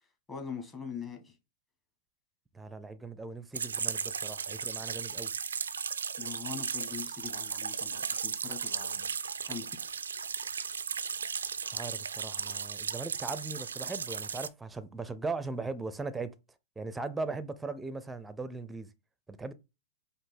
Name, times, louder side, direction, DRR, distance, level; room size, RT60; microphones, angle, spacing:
voice 1, 0.3-1.4 6.2-9.1 9.5-9.8, left 6 dB, 20° left, 1.7 m, -42 dB
voice 2, 2.5-5.3 11.7-16.3 16.8-18.9 19.3-19.5, right 3 dB, 10° right, 0.6 m, -39 dB
sound 1, 3.5-14.5, right 6 dB, 75° right, 0.3 m, -36 dB
4.9 x 2.7 x 3.7 m
figure-of-eight pair, 100°, 0 cm